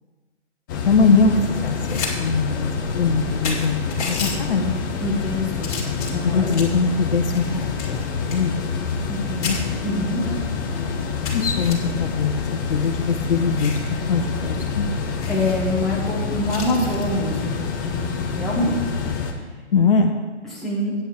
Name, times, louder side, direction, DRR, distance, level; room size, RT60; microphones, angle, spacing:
sound 1, 0.7-19.3, left 5 dB, 20° left, 0.6 m, -27 dB
voice 1, 0.8-2.7 3.0-3.8 4.0-4.8 6.2-8.6 9.4-9.6 10.3-10.4 10.7-12.4 12.7-15.0 19.7-20.1, left 4 dB, 50° left, 4 dB, 1.1 m, -22 dB
sound 2, 1.6-2.1 2.5-2.6 3.1-3.2 3.4-4.3 5.0-5.3 5.6-6.8 7.3-9.2 9.4-9.6 10.2-10.3 10.6-10.7 11.2-11.7 12.6-13.9 14.3-14.4 14.7-14.8 15.2-15.6 16.5-17.1 18.8-19.0, left 5 dB, 35° left, 2.1 m, -33 dB
voice 2, 5.0-5.7 6.1-6.5 9.1-9.5 9.8-10.2 15.3-17.6 17.8-18.0 18.3-18.7 20.5-20.9, left 1 dB, ahead, -7 dB, 1.3 m, -25 dB
8.9 x 5.4 x 7.8 m, 1.3 s
figure-of-eight pair, 140°, 35 cm